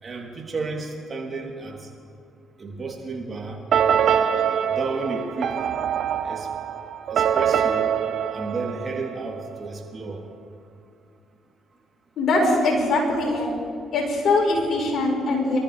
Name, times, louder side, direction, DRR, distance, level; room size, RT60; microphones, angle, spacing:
voice 1, 0.0-1.9 2.6-3.6 4.7-5.6 6.2-6.5 7.1-7.9 8.3-10.2, right 3 dB, 40° right, -1 dB, 3.6 m, -32 dB
sound 1, 3.7-9.5, right 8 dB, 60° right, 0.8 m, -24 dB
voice 2, 12.2-13.5 13.9-15.6, left 2 dB, 60° left, -2 dB, 4.9 m, -22 dB
25.0 x 13.0 x 3.5 m, 2.3 s
supercardioid pair, 60°, 0 cm